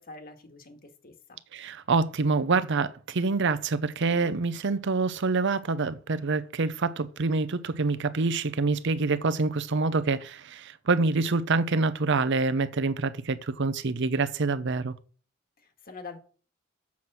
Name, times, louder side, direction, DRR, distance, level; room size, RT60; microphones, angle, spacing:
voice 1, 0.0-1.4 15.6-16.2, left 3 dB, 45° left, 1.7 m, -45 dB
voice 2, 1.5-14.9, right 3 dB, 60° right, 0.7 m, -26 dB
7.2 x 6.0 x 7.5 m
head